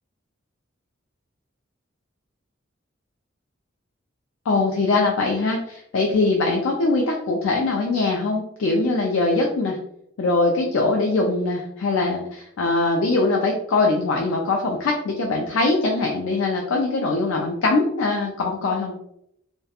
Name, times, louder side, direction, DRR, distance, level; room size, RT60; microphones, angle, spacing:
voice 1, 4.5-9.8 10.2-18.9, left 3 dB, 85° left, 1 dB, 0.4 m, -22 dB
2.3 x 2.1 x 2.7 m, 0.77 s
head